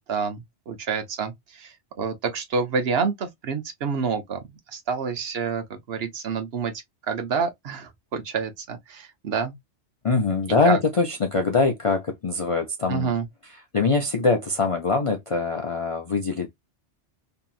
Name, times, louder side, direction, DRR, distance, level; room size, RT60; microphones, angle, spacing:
voice 1, 0.0-1.3 1.6-4.4 4.7-6.7 7.1-9.5 10.6-10.8 12.9-13.2, right 5 dB, 65° right, 0.9 m, -28 dB
voice 2, 10.0-13.1 13.4-16.6, left 4 dB, 50° left, 0.4 m, -23 dB
2.9 x 2.6 x 2.3 m
omnidirectional pair, 1.2 m